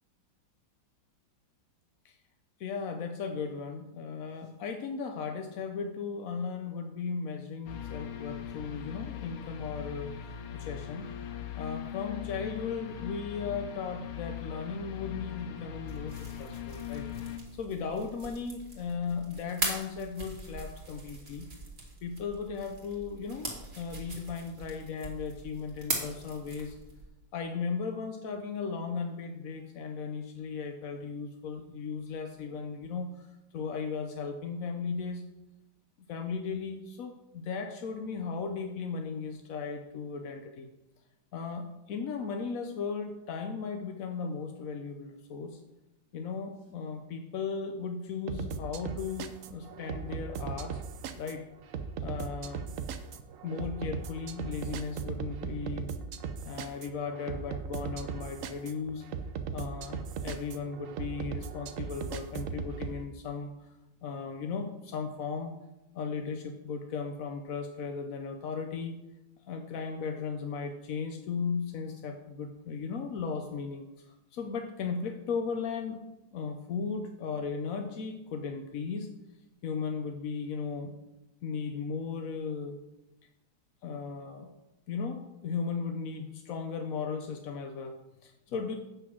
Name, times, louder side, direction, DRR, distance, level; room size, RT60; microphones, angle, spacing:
voice 1, 2.6-11.1 11.5-17.1 17.5-21.5 22.0-26.8 27.3-35.2 36.1-40.7 41.3-45.6 46.1-50.8 51.1-52.7 53.4-56.0 56.4-59.0 59.5-63.7 64.0-65.6 65.9-69.0 69.5-76.0 76.3-79.1 79.6-80.9 81.4-82.8 83.8-84.5 84.9-88.8, left 5 dB, 65° left, 5 dB, 0.9 m, -36 dB
sound 1, 7.7-17.4, left 10 dB, 85° left, 1.7 m, -40 dB
sound 2, 15.9-27.1, right 2 dB, 30° right, 2.1 m, -41 dB
sound 3, 48.3-63.0, right 6 dB, 80° right, 0.7 m, -38 dB
8.3 x 6.1 x 6.1 m, 0.94 s
omnidirectional pair, 2.2 m